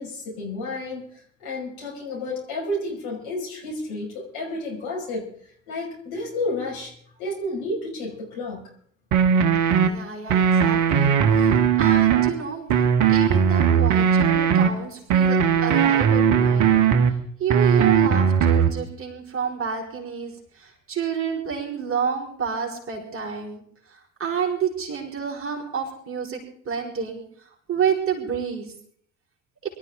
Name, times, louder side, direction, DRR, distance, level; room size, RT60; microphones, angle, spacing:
voice 1, 0.0-5.3 5.7-6.9 7.2-8.7, left 2 dB, 60° left, -2 dB, 5.9 m, -31 dB
sound 1, 9.1-9.9 10.3-12.3 12.7-14.7 15.1-17.1 17.5-18.7, right 7 dB, 55° right, 1.5 m, -18 dB
voice 2, 9.8-12.8 13.1-16.7 17.4-23.6 23.9-26.4 26.6-27.2 27.7-28.7, right 7 dB, 35° right, 1 dB, 5.0 m, -29 dB
24.5 x 13.0 x 3.8 m, 0.63 s
figure-of-eight pair, 55°, 36 cm